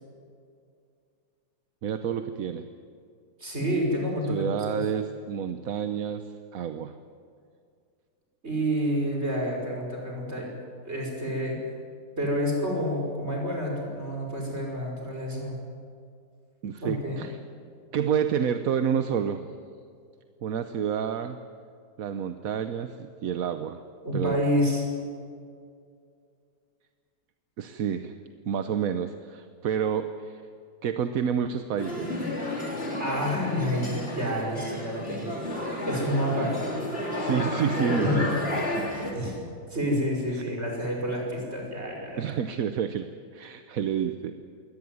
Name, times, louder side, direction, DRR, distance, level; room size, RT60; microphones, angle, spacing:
voice 1, 1.8-2.7 4.3-7.0 16.6-17.4 17.9-19.5 20.4-21.4 22.0-23.8 24.1-24.4 27.6-28.1 28.4-30.4 30.8-32.1 37.1-38.9 40.3-40.4 42.2-44.4, right 8 dB, 60° right, 9 dB, 1.2 m, -29 dB
voice 2, 3.4-4.8 8.4-10.5 10.8-11.6 12.2-15.6 16.8-17.2 24.0-24.9 33.0-35.4 35.9-36.6 37.9-38.2 39.1-42.2, equal, 35° right, 0 dB, 5.9 m, -29 dB
sound 1, 31.8-39.1, left 1 dB, 35° left, 3.9 m, -31 dB
22.5 x 18.0 x 9.5 m, 2.3 s
omnidirectional pair, 1.9 m